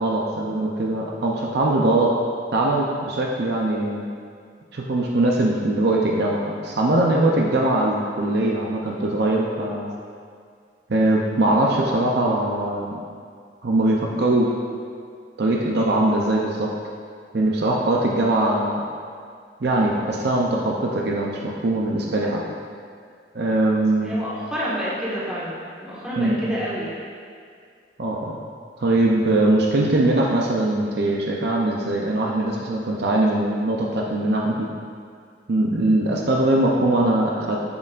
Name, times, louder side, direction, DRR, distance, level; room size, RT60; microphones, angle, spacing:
voice 1, 0.0-2.1 2.5-4.1 4.7-9.9 10.9-13.0 13.6-14.5 15.4-16.7 17.3-18.9 19.6-22.4 23.3-24.2 26.2-26.6 28.0-28.4 28.8-34.7 35.5-37.6, right 1 dB, 60° right, -2 dB, 0.6 m, -21 dB
voice 2, 24.0-26.9, equal, 5° right, -10 dB, 1.6 m, -29 dB
7.0 x 6.5 x 2.5 m, 2.2 s
head